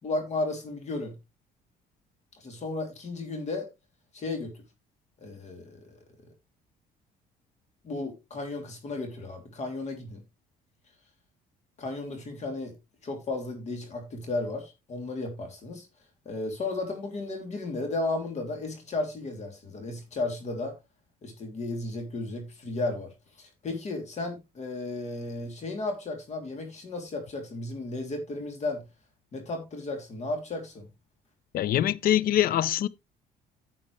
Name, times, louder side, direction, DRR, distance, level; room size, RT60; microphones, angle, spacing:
voice 1, 0.0-1.1 2.3-3.7 4.1-4.5 5.2-6.0 7.8-10.2 11.8-12.8 13.0-15.9 16.2-20.7 21.2-23.1 23.4-28.8 29.3-30.9, left 2 dB, 40° left, 3.0 m, -34 dB
voice 2, 31.5-32.9, left 11 dB, 60° left, 0.6 m, -24 dB
10.0 x 7.7 x 3.2 m
cardioid pair, 110°, 17 cm